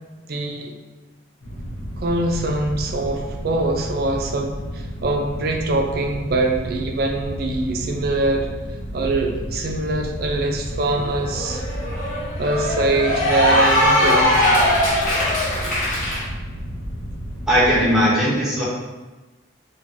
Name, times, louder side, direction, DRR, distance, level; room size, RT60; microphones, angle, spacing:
voice 1, 0.3-0.7 2.0-8.5 8.9-11.6 12.4-14.4, right 2 dB, 50° right, 2 dB, 0.4 m, -23 dB
sound 1, 1.4-17.9, equal, 85° left, 0.7 m, -32 dB
Cheering / Applause, 10.8-16.2, left 1 dB, 40° left, 0.9 m, -20 dB
voice 2, 17.5-18.6, equal, ahead, -8 dB, 0.8 m, -18 dB
4.4 x 2.3 x 2.6 m, 1.2 s
head